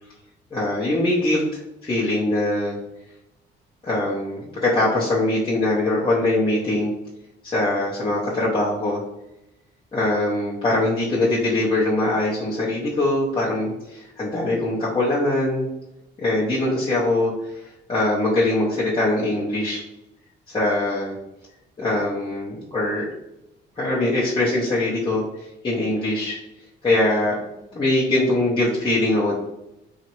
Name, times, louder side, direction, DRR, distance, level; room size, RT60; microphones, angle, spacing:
voice 1, 0.5-2.8 3.8-6.9 7.4-9.0 9.9-15.7 16.2-19.8 20.5-21.2 21.8-23.1 23.8-26.4 26.8-29.3, left 2 dB, 25° left, -7 dB, 0.7 m, -22 dB
3.0 x 2.4 x 2.9 m, 0.89 s
cardioid pair, 90°, 20 cm